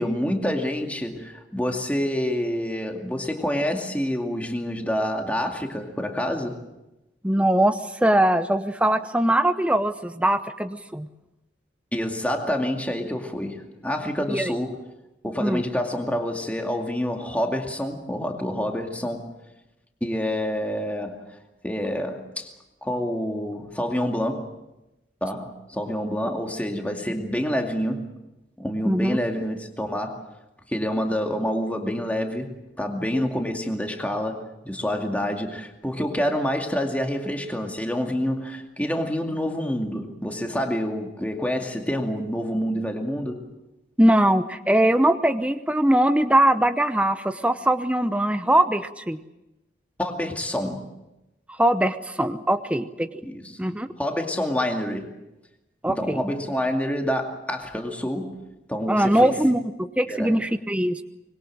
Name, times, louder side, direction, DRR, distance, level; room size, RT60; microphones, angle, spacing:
voice 1, 0.0-6.6 11.9-14.8 15.2-19.3 20.0-21.2 21.6-22.5 22.8-24.5 25.2-28.1 28.6-30.2 30.7-43.4 50.0-50.9 53.2-53.6 54.0-55.1 55.9-58.4 58.7-59.3 60.1-60.4, equal, 10° left, 2 dB, 2.3 m, -27 dB
voice 2, 7.2-11.1 14.3-14.5 15.4-15.6 28.8-29.2 44.0-49.2 51.6-53.1 53.6-53.9 55.8-56.2 58.9-61.0, right 1 dB, 5° right, 9 dB, 0.8 m, -21 dB
25.5 x 21.5 x 7.6 m, 0.96 s
head